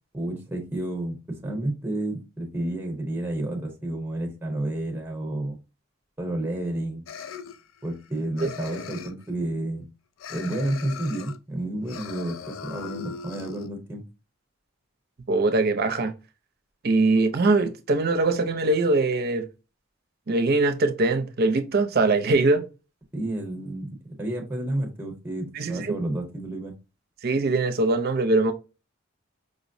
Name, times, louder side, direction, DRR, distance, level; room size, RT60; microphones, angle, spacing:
voice 1, 0.1-5.6 6.2-7.0 7.8-9.9 10.3-14.0 23.1-26.7, right 1 dB, 10° right, 0.8 m, -30 dB
sound 1, 7.1-8.1 8.4-9.3 10.2-11.4 11.8-13.7, left 7 dB, 75° left, 0.4 m, -39 dB
voice 2, 15.3-16.1 16.8-19.5 20.3-22.7 25.5-25.9 27.2-28.5, right 2 dB, 50° right, 0.5 m, -22 dB
5.0 x 2.0 x 2.6 m
head